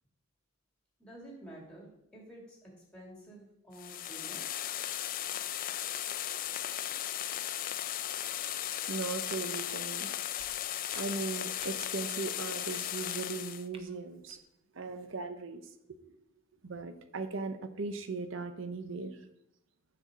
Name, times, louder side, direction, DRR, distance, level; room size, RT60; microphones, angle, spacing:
voice 1, 1.0-4.5, right 1 dB, 5° left, -2 dB, 2.3 m, -50 dB
sound 1, 3.7-13.7, left 11 dB, 40° left, 0.3 m, -36 dB
voice 2, 8.9-10.1 10.5-14.4 14.7-15.7 16.0-16.2 16.6-19.2, right 4 dB, 65° right, 9 dB, 0.7 m, -38 dB
sound 2, 9.7-9.8 10.4-10.5 10.9-11.0 11.6-11.8 12.7-12.8 13.7-13.8 14.2-14.4, right 3 dB, 25° right, 0.7 m, -52 dB
7.3 x 4.2 x 6.6 m, 0.82 s
head